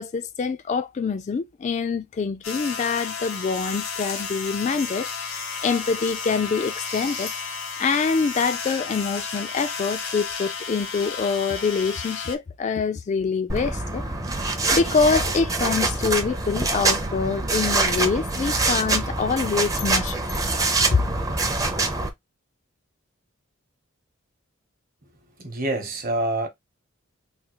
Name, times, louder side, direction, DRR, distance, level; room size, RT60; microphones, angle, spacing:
voice 1, 0.0-7.4 7.8-14.0 14.4-20.2 20.9-21.0, left 5 dB, 35° left, 0.3 m, -25 dB
sound 1, 2.4-12.4, left 5 dB, 80° left, 0.9 m, -32 dB
sound 2, 13.5-22.1, right 3 dB, 15° right, 0.5 m, -25 dB
voice 2, 25.4-26.5, right 2 dB, 45° right, 0.9 m, -26 dB
3.5 x 2.3 x 2.9 m
head